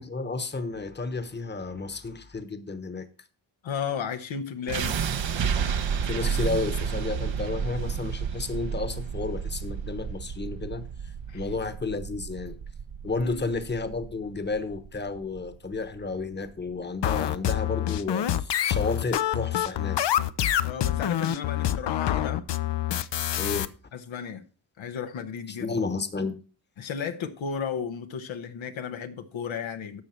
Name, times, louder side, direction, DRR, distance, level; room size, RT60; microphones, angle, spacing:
voice 1, 0.0-3.1 6.0-10.9 11.3-12.6 13.0-20.0 23.4-23.7 25.5-26.4, left 3 dB, 25° left, 1.1 m, -32 dB
voice 2, 3.6-5.0 11.3-11.4 13.2-13.4 20.6-22.4 23.9-24.4 24.8-25.7 26.8-30.0, left 7 dB, 85° left, 1.1 m, -34 dB
sound 1, 4.7-16.7, right 7 dB, 70° right, 1.1 m, -31 dB
sound 2, 17.0-23.7, left 11 dB, 65° left, 0.7 m, -26 dB
11.5 x 6.7 x 4.4 m
cardioid pair, 75°, 46 cm